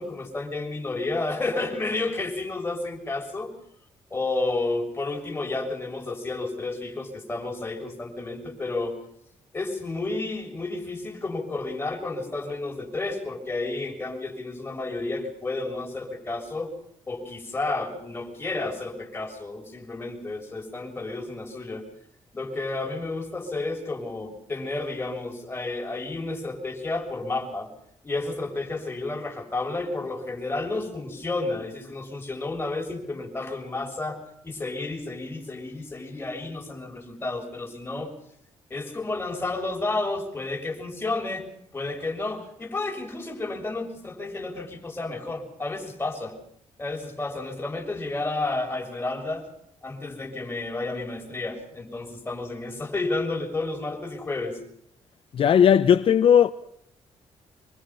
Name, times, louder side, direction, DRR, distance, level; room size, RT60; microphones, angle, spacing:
voice 1, 0.0-3.5 4.1-9.0 9.5-16.7 17.1-21.8 22.3-27.7 28.0-38.1 38.7-41.5 41.7-46.4 46.8-49.5 49.8-54.6, left 2 dB, 20° left, 6.7 m, -31 dB
voice 2, 55.3-56.5, left 8 dB, 55° left, 0.9 m, -17 dB
25.5 x 23.5 x 5.6 m
cardioid pair, 135°, 11 cm